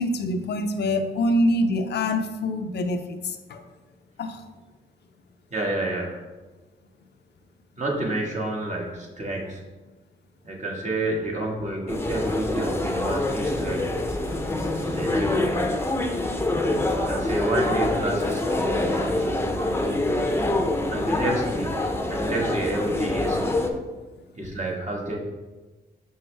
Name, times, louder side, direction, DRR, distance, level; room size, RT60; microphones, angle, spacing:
voice 1, 0.0-3.6 4.2-4.4, left 1 dB, 65° left, 7 dB, 0.6 m, -25 dB
voice 2, 5.5-6.1 7.8-9.6 10.4-13.9 14.8-15.7 17.0-20.0 20.9-21.8 22.1-23.4 24.4-25.2, right 1 dB, 40° right, -1 dB, 1.7 m, -29 dB
sound 1, 11.9-23.7, left 2 dB, 15° left, 0.7 m, -25 dB
5.4 x 5.4 x 3.3 m, 1.2 s
cardioid pair, 70°, 18 cm